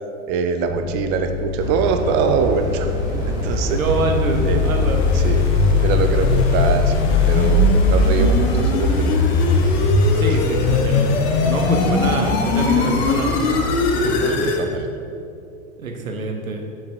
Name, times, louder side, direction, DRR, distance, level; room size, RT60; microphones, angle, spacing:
voice 1, 0.3-2.9 3.4-3.8 4.4-4.6 5.1-5.4 5.8-6.9 7.2-9.2 10.1-10.3 14.2-14.9, right 6 dB, 30° right, 7 dB, 0.4 m, -23 dB
sound 1, 0.6-12.4 13.3-13.6, left 7 dB, 45° right, 1.6 m, -25 dB
sound 2, 1.6-13.9, right 2 dB, 10° right, 1.0 m, -27 dB
bitcrushed riser, 2.5-14.6, left 3 dB, 50° left, 0.9 m, -20 dB
voice 2, 3.7-5.1 10.2-11.1 11.4-13.5 13.9-14.5 15.8-16.6, right 3 dB, 85° right, 3 dB, 0.9 m, -25 dB
5.8 x 5.1 x 4.6 m, 2.5 s
hypercardioid pair, 95°, 41 cm